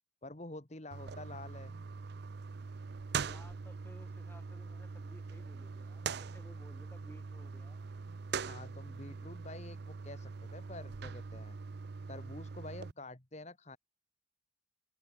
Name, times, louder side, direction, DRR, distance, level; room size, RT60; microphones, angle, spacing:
voice 1, 0.2-1.8 8.3-11.6 12.1-13.8, left 2 dB, 35° left, 1.9 m, -48 dB
sound 1, 0.9-12.9, right 5 dB, 55° right, 0.5 m, -42 dB
voice 2, 1.0-1.4 3.2-7.8, equal, 10° left, 7.9 m, -58 dB
open air
head